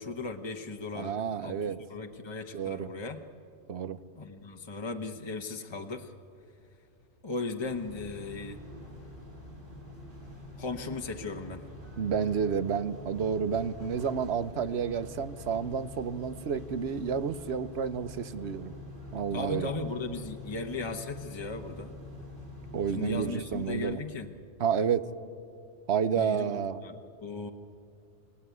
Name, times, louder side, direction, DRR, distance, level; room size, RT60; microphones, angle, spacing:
voice 1, 0.0-3.2 4.1-6.1 7.2-8.6 10.6-11.6 19.3-22.0 22.9-24.3 26.2-27.5, left 3 dB, 25° left, 4 dB, 1.0 m, -37 dB
voice 2, 0.9-1.8 2.5-2.9 3.7-4.0 12.0-18.7 19.1-19.7 22.7-24.0 24.6-25.1 25.9-26.8, right 7 dB, 65° right, 14 dB, 1.0 m, -30 dB
sound 1, 7.6-23.9, left 1 dB, 45° right, 7.1 m, -45 dB
29.0 x 19.0 x 9.4 m, 2.5 s
omnidirectional pair, 1.2 m